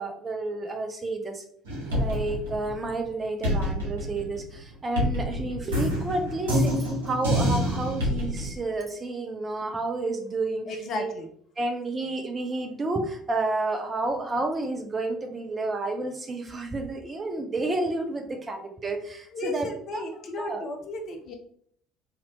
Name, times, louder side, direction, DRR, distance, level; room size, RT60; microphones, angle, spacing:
voice 1, 0.0-1.4 1.9-11.1 11.6-20.0 20.4-20.7, right 2 dB, 25° right, 5 dB, 0.6 m, -30 dB
sound 1, 1.7-3.1 3.4-8.5, equal, 70° right, 0.9 m, -27 dB
voice 2, 10.7-11.3 19.3-21.3, left 2 dB, 45° left, 5 dB, 0.6 m, -34 dB
2.9 x 2.6 x 2.9 m, 0.63 s
figure-of-eight pair, 55°, 0 cm